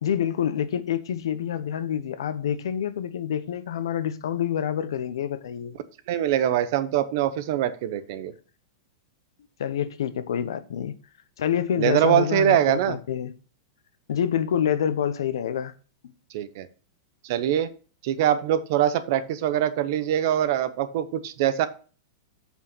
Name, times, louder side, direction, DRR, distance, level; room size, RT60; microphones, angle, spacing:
voice 1, 0.0-5.8 9.6-10.9 11.4-13.3 14.1-15.7, left 9 dB, 85° left, 1.0 m, -27 dB
voice 2, 6.1-8.3 11.8-13.0 16.3-16.7 17.2-17.7 18.0-21.7, right 11 dB, 40° right, 0.8 m, -23 dB
7.3 x 5.6 x 5.6 m
supercardioid pair, 180°, 2 cm